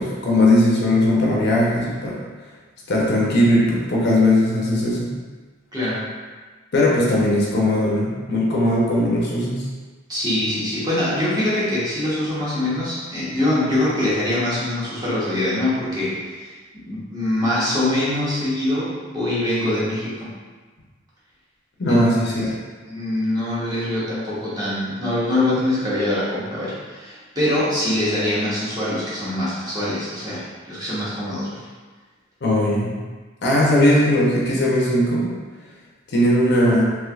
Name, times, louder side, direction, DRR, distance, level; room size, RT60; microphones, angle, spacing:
voice 1, 0.0-2.2 2.9-5.1 6.7-9.6 21.8-22.5 32.4-33.0 33.4-35.3 36.1-36.8, left 1 dB, 55° left, -4 dB, 0.6 m, -18 dB
voice 2, 5.7-6.0 10.1-16.5 16.7-20.3 21.9-22.3 22.9-31.6, left 1 dB, 20° right, -9 dB, 0.8 m, -23 dB
3.2 x 3.0 x 2.3 m, 1.4 s
head